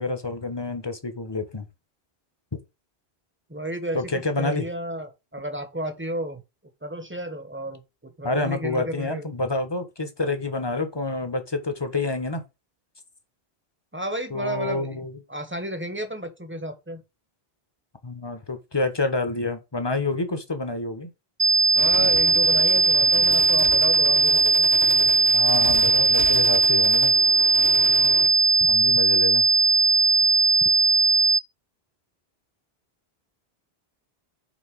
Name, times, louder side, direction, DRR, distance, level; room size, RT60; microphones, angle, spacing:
voice 1, 0.0-1.7 3.9-4.7 8.2-12.4 14.3-15.2 18.0-21.1 25.3-27.1 28.6-29.4, left 2 dB, 25° left, 1.3 m, -28 dB
voice 2, 3.5-6.4 6.8-9.2 13.9-15.0 15.3-17.0 21.7-24.7, right 1 dB, 10° right, 1.3 m, -32 dB
sound 1, 21.4-31.4, right 3 dB, 25° right, 0.7 m, -18 dB
sound 2, 21.8-28.3, right 3 dB, 85° right, 1.6 m, -35 dB
6.3 x 4.4 x 6.1 m
omnidirectional pair, 1.1 m